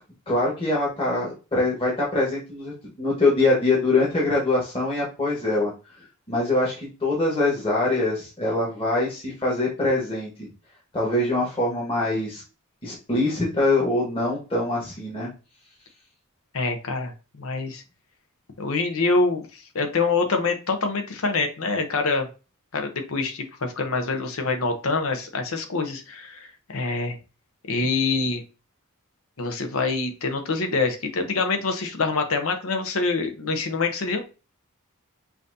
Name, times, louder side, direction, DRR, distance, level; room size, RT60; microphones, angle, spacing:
voice 1, 0.3-5.7 6.3-10.5 10.9-12.4 12.8-15.3, left 2 dB, 25° left, -5 dB, 1.4 m, -23 dB
voice 2, 16.5-17.1 17.4-17.8 18.6-22.3 22.7-27.2 27.7-28.4 29.4-34.2, left 3 dB, 70° left, 5 dB, 0.8 m, -25 dB
5.6 x 2.7 x 2.6 m, 0.32 s
head